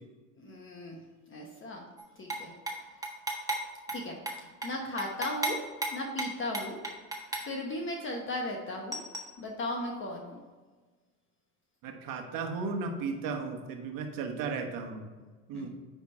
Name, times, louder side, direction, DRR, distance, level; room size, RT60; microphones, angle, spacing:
voice 1, 0.4-1.0 1.3-1.9 2.2-3.0 3.9-5.6 5.9-6.8 7.4-9.0 9.4-10.4 15.5-15.7, left 1 dB, 30° left, 1 dB, 1.0 m, -37 dB
sound 1, 2.0-2.4 2.7-2.8 3.0-3.6 3.9-4.0 4.3-4.7 5.0-7.5 8.9-9.2, right 2 dB, 10° right, 1.4 m, -33 dB
voice 2, 11.8-15.1 15.5-15.7, right 4 dB, 60° right, 3 dB, 1.4 m, -35 dB
9.9 x 3.5 x 4.3 m, 1.4 s
supercardioid pair, 95°, 38 cm